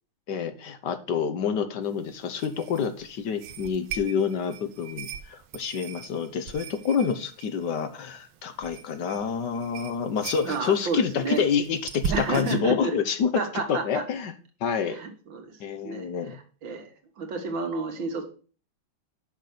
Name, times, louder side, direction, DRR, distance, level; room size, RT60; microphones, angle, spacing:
voice 1, 0.3-13.4 13.7-14.3 14.6-15.0 15.6-16.4, left 6 dB, 65° left, 8 dB, 1.4 m, -28 dB
sound 1, 1.8-12.6, right 7 dB, 85° right, 1.6 m, -40 dB
voice 2, 10.4-11.4 12.1-12.9 13.4-14.0 14.9-15.5 15.8-16.1 16.6-16.9 17.2-18.2, right 4 dB, 70° right, 5 dB, 2.2 m, -30 dB
6.7 x 5.9 x 6.5 m, 0.39 s
omnidirectional pair, 2.2 m